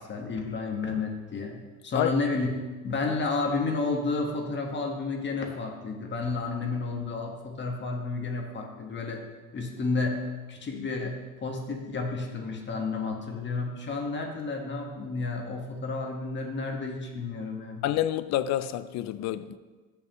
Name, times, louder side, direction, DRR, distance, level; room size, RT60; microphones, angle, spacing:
voice 1, 0.0-2.5 2.8-9.2 9.5-17.8, left 3 dB, 35° left, 1.5 m, -31 dB
voice 2, 17.8-19.6, left 12 dB, 60° left, 0.5 m, -28 dB
13.5 x 5.7 x 3.1 m
supercardioid pair, 100°, 30 cm